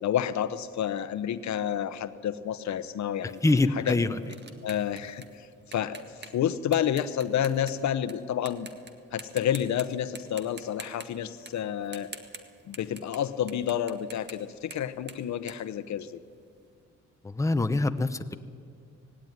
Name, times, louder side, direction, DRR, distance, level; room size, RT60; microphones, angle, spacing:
voice 1, 0.0-3.4 3.8-3.9 4.6-6.0 6.3-8.7 9.1-12.1 12.7-16.2, left 10 dB, 65° left, 12 dB, 1.0 m, -29 dB
voice 2, 3.2-4.2 17.2-18.2, left 2 dB, 10° left, 8 dB, 0.9 m, -25 dB
sound 1, 3.2-8.1 8.5-8.9 9.2-9.8 10.1-16.5, right 4 dB, 35° right, 1.9 m, -46 dB
18.5 x 16.5 x 9.6 m, 2.2 s
cardioid pair, 90°, 30 cm